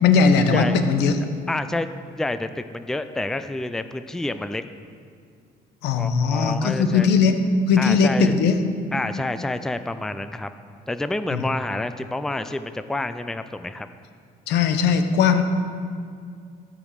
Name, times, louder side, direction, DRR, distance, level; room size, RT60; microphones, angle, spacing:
voice 1, 0.0-1.2 5.8-7.4 7.7-8.6 11.3-11.4 14.5-15.4, left 5 dB, 85° left, 8 dB, 0.9 m, -19 dB
voice 2, 1.5-1.9 2.2-4.6 6.0-7.1 7.8-8.4 8.9-10.5 10.9-13.9, left 2 dB, 5° left, 10 dB, 0.4 m, -28 dB
14.0 x 5.2 x 6.6 m, 2.3 s
cardioid pair, 110°, 17 cm